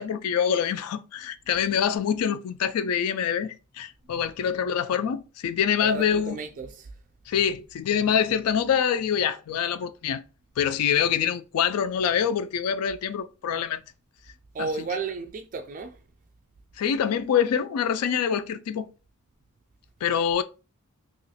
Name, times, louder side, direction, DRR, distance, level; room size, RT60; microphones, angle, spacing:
voice 1, 0.0-6.4 7.3-10.2 10.6-13.8 14.6-14.7 16.8-18.9 20.0-20.4, left 8 dB, 80° left, 0.3 m, -25 dB
voice 2, 5.8-6.9 14.5-16.0, right 4 dB, 35° right, 0.3 m, -33 dB
2.9 x 2.4 x 4.0 m
head